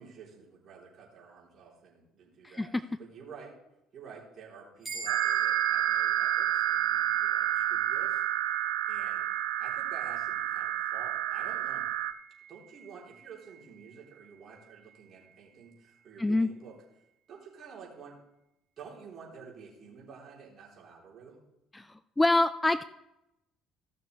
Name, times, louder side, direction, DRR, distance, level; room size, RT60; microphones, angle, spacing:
voice 1, 0.0-2.7 3.0-3.5 3.9-8.2 8.9-9.3 9.6-11.9 12.5-16.7 17.3-18.1 18.8-21.4, right 6 dB, 40° right, -4 dB, 3.7 m, -50 dB
sound 1, 4.8-14.6, right 5 dB, 15° right, 3.4 m, -44 dB
sound 2, 5.1-12.1, right 13 dB, 65° right, 0.5 m, -29 dB
voice 2, 16.2-16.5 21.7-21.9 22.2-22.8, left 2 dB, 15° left, 14 dB, 0.4 m, -25 dB
16.0 x 6.5 x 3.2 m, 0.87 s
figure-of-eight pair, 55°, 0 cm